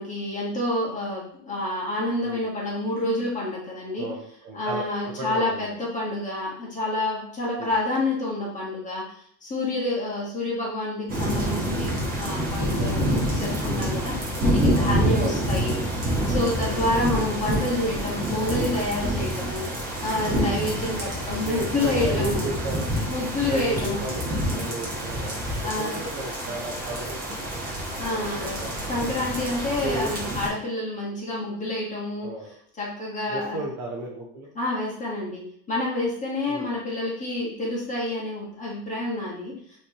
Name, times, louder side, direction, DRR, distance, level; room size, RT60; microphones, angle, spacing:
voice 1, 0.0-4.1 4.5-9.2 9.4-19.7 20.0-22.4 23.1-24.0 25.6-26.0 27.9-32.3 32.8-33.6 34.5-39.6, left 2 dB, 15° left, -5 dB, 1.5 m, -28 dB
voice 2, 4.0-5.7 7.6-7.7 12.6-13.2 15.2-15.3 16.7-16.9 20.3-20.8 21.5-22.9 23.5-28.9 29.8-30.1 32.2-32.5 33.3-34.5 36.5-36.7, right 2 dB, 35° right, -2 dB, 0.8 m, -34 dB
sound 1, 11.1-30.5, equal, 20° right, 1.1 m, -27 dB
5.8 x 3.2 x 2.9 m, 0.64 s
supercardioid pair, 150°, 49 cm